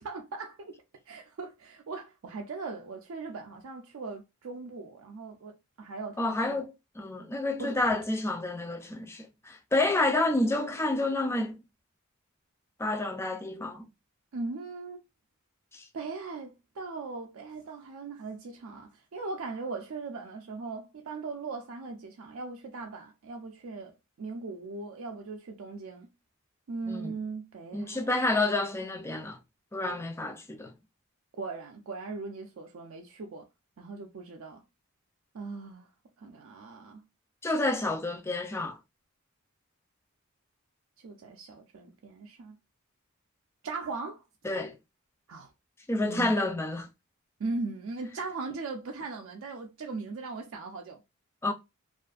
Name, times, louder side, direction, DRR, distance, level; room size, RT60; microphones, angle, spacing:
voice 1, 0.0-6.6 7.6-7.8 14.3-15.0 15.9-23.9 24.2-26.1 26.7-28.1 31.4-33.5 33.8-34.6 35.3-35.9 36.2-37.0 41.0-42.6 43.6-44.2 45.3-45.5 46.1-46.3 47.4-51.0, right 3 dB, 65° right, 0.4 m, -39 dB
voice 2, 6.2-11.6 12.8-13.8 15.7-15.8 26.9-27.1 27.7-29.4 29.7-30.7 37.4-38.8 44.4-44.7 45.9-46.9 51.4-51.5, left 2 dB, 10° left, 0.3 m, -29 dB
2.4 x 2.4 x 2.3 m
head